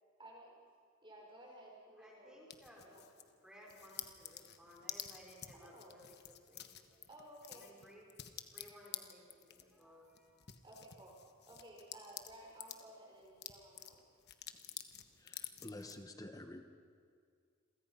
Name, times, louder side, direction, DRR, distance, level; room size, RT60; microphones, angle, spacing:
voice 1, 0.2-0.5 1.0-2.4 2.9-3.0 5.5-6.0 7.1-7.7 10.6-11.1 11.5-14.0, right 1 dB, 20° right, -1 dB, 5.1 m, -56 dB
voice 2, 2.0-7.0 7.5-8.1 8.5-10.4, equal, 5° right, -4 dB, 5.6 m, -59 dB
sound 1, 2.5-3.3 3.7-12.8 13.2-16.0, left 11 dB, 50° left, 1.2 m, -50 dB
voice 3, 15.2-16.6, left 1 dB, 15° left, 7 dB, 1.1 m, -49 dB
29.0 x 23.0 x 5.6 m, 2.2 s
head